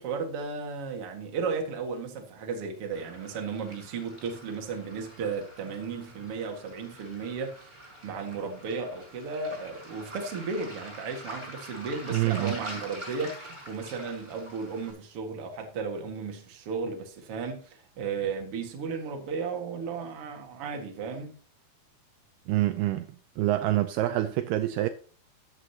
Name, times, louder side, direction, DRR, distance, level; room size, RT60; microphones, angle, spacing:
voice 1, 0.0-21.3, right 5 dB, 45° right, 2.1 m, -34 dB
Waves surf, 2.9-14.9, right 1 dB, 10° right, 4.6 m, -45 dB
voice 2, 12.1-12.6 22.5-23.1 23.4-24.9, right 15 dB, 80° right, 2.4 m, -26 dB
13.5 x 9.8 x 2.9 m
omnidirectional pair, 4.9 m